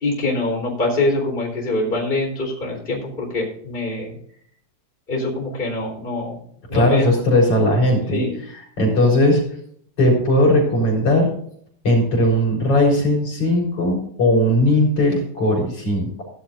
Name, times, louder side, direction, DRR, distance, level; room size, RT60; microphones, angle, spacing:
voice 1, 0.0-4.1 5.1-6.3 6.7-7.1 8.1-8.3, left 2 dB, 15° left, -2 dB, 3.7 m, -24 dB
voice 2, 6.7-9.4 10.0-11.3 11.8-16.2, left 1 dB, 40° left, -1 dB, 5.2 m, -18 dB
17.0 x 11.0 x 2.5 m, 0.64 s
omnidirectional pair, 4.0 m